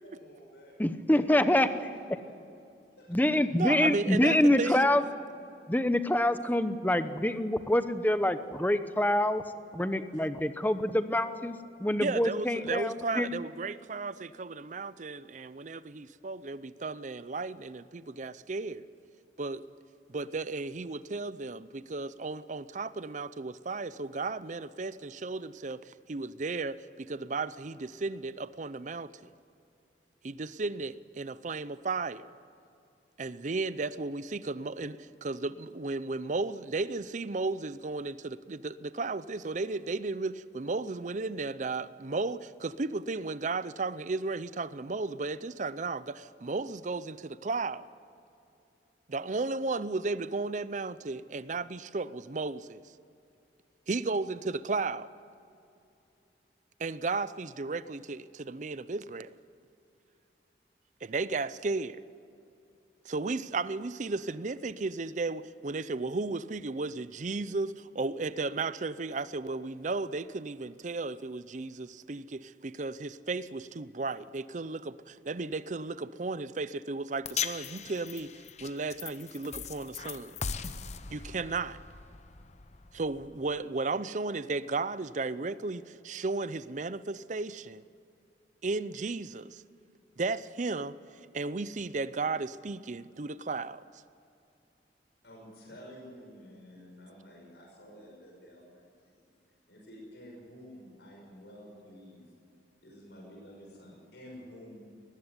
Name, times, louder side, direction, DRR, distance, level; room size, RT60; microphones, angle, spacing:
voice 1, 0.0-0.7 1.1-1.2 1.6-1.8 3.0-3.4 4.1-4.8 95.2-99.3 99.7-102.2 102.8-104.8, equal, 75° left, 6.0 m, -50 dB
voice 2, 0.8-1.7 3.1-5.0 5.7-9.4 9.7-13.3, left 1 dB, 10° left, 0.8 m, -26 dB
voice 3, 3.6-4.9 12.0-18.9 19.4-19.6 20.1-29.3 30.2-32.2 33.2-47.9 49.1-52.8 53.9-55.1 56.8-59.3 61.0-62.0 63.0-78.3 78.6-80.4 81.1-81.8 82.9-87.8 88.6-89.6 90.2-90.9 91.3-93.8 96.8-96.9, right 3 dB, 45° right, 0.6 m, -34 dB
sound 1, 77.2-83.6, left 6 dB, 40° left, 0.8 m, -40 dB
20.0 x 15.0 x 9.8 m
head